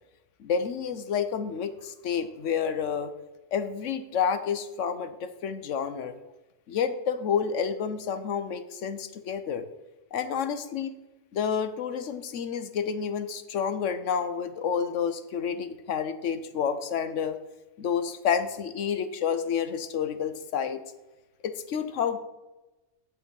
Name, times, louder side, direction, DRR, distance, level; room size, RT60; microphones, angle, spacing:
voice 1, 0.4-3.1 3.5-6.2 6.7-9.6 10.1-10.9 11.3-17.4 17.8-20.8 21.4-22.2, left 7 dB, 90° left, 11 dB, 1.1 m, -29 dB
8.8 x 6.9 x 5.3 m, 1.1 s
omnidirectional pair, 1.2 m